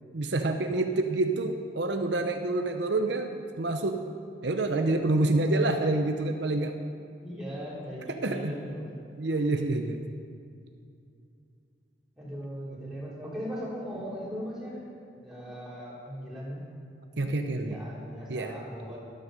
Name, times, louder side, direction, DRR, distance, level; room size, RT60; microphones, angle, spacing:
voice 1, 0.1-4.0 4.4-6.7 8.1-8.5 9.2-10.0 17.2-17.8 18.3-18.5, right 2 dB, 60° right, 5 dB, 0.7 m, -27 dB
voice 2, 7.2-9.0 12.2-14.8 15.1-16.6 17.5-19.0, equal, 5° right, -8 dB, 4.0 m, -38 dB
13.5 x 12.5 x 5.2 m, 2.5 s
head